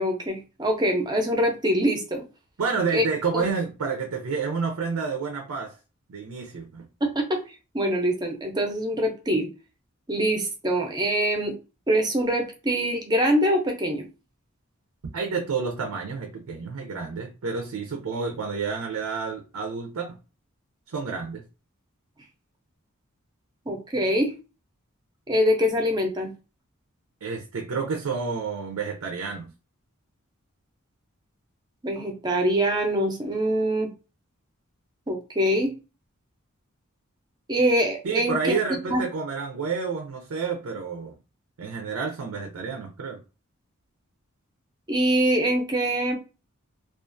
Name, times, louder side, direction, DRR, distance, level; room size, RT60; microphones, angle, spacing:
voice 1, 0.0-2.2 2.9-3.0 3.3-3.5 7.0-7.4 7.7-9.5 10.1-11.5 11.9-14.0 23.7-24.3 25.3-26.3 31.8-33.9 35.1-35.7 37.5-38.5 38.9-39.0 44.9-46.1, equal, 20° right, 2 dB, 0.5 m, -24 dB
voice 2, 2.6-5.7 6.1-6.9 15.1-20.2 20.9-21.4 27.2-29.5 38.0-41.1 41.6-43.2, right 5 dB, 85° right, 3 dB, 0.5 m, -29 dB
2.4 x 2.3 x 2.5 m, 0.31 s
head